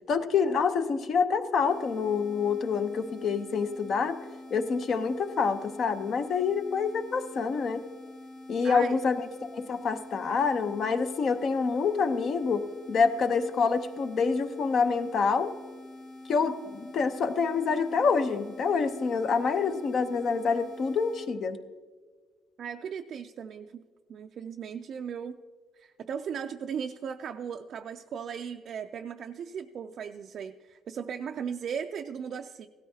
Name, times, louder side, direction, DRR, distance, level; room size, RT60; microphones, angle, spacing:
voice 1, 0.1-4.2 4.5-7.8 8.5-9.3 9.5-12.6 12.9-15.5 16.3-21.6, left 5 dB, 50° left, 9 dB, 0.8 m, -27 dB
sound 1, 1.6-21.3, left 1 dB, 70° left, 3.0 m, -46 dB
voice 2, 8.6-9.0 22.6-23.8 24.1-25.4 25.7-32.7, right 7 dB, 50° right, 4 dB, 0.4 m, -37 dB
16.5 x 13.0 x 2.8 m, 1.5 s
cardioid pair, 130°, 0 cm